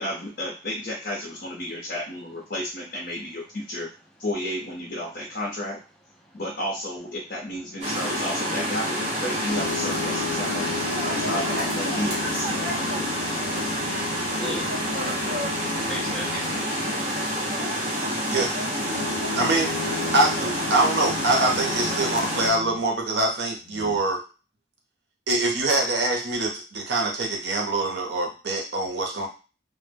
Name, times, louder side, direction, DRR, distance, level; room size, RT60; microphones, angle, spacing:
voice 1, 0.0-3.9 4.2-5.8 6.3-10.7 11.0-13.1 16.3-16.4 16.7-16.8, left 1 dB, 50° left, -4 dB, 0.7 m, -32 dB
sound 1, 7.8-22.5, equal, 35° right, 0.8 m, -28 dB
sound 2, 9.5-16.8 18.8-23.0 23.6-24.0, left 5 dB, 85° left, 0.3 m, -36 dB
voice 2, 14.1-14.7 15.7-16.4, equal, 5° left, -3 dB, 0.6 m, -38 dB
voice 3, 19.4-19.7 20.1-24.2 25.3-29.3, right 2 dB, 65° right, 1 dB, 0.7 m, -24 dB
2.1 x 2.1 x 3.3 m, 0.33 s
head